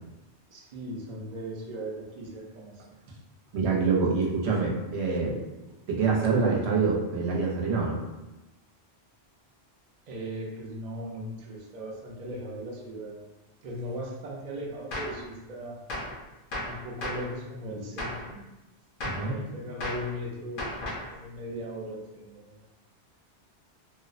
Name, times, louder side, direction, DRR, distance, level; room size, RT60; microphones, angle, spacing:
voice 1, 0.5-2.8 10.1-13.1 13.6-15.8 16.6-18.4 19.2-22.7, equal, 50° right, -2 dB, 0.5 m, -38 dB
voice 2, 3.5-5.4 5.9-8.0 19.0-19.4, right 4 dB, 80° right, -2 dB, 0.9 m, -26 dB
Gunshot gunfire, 14.9-15.2 15.9-16.2 16.5-17.3 18.0-18.3 19.0-19.3 19.8-20.1 20.6-21.1, left 1 dB, 60° left, 0.7 m, -34 dB
2.7 x 2.0 x 2.4 m, 1.0 s
omnidirectional pair, 1.1 m